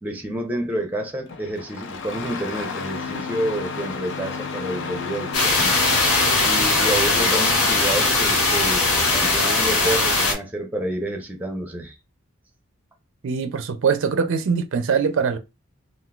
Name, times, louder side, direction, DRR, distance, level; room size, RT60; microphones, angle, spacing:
voice 1, 0.0-5.9 6.4-12.0, right 1 dB, 5° right, 0.6 m, -29 dB
Engine starting, 1.3-9.4, left 4 dB, 55° left, 0.5 m, -33 dB
sound 1, 5.3-10.3, left 3 dB, 80° left, 1.2 m, -19 dB
voice 2, 13.2-15.4, right 6 dB, 60° right, 0.4 m, -22 dB
3.7 x 2.5 x 2.3 m
head